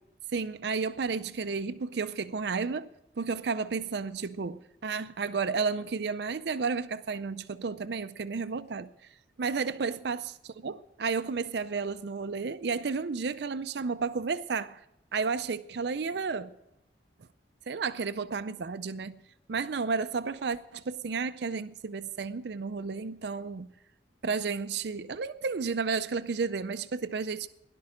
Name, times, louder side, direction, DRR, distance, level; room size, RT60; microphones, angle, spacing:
voice 1, 0.3-2.9 3.2-8.9 9.4-10.2 10.5-14.8 15.1-16.5 17.7-19.1 19.5-23.7 24.2-27.5, right 5 dB, 60° right, 0.5 m, -32 dB
17.0 x 11.5 x 5.0 m
head